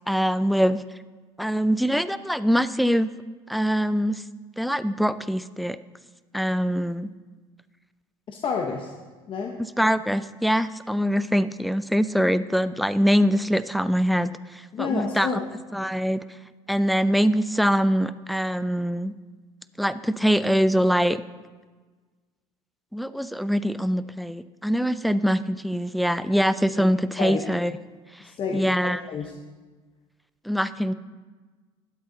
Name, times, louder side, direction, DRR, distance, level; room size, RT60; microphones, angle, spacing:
voice 1, 0.1-0.8 1.4-3.1 3.5-4.2 4.6-5.8 6.3-7.1 9.6-15.3 15.7-16.2 16.7-19.1 19.8-21.2 22.9-27.7 28.1-28.2 28.5-29.0 30.4-30.9, equal, ahead, 15 dB, 0.4 m, -23 dB
voice 2, 8.3-8.9 9.3-9.6 14.7-15.4 27.2-27.4 28.2-29.3, left 5 dB, 45° left, 2 dB, 0.9 m, -29 dB
12.0 x 7.8 x 3.9 m, 1.3 s
hypercardioid pair, 75°, 12 cm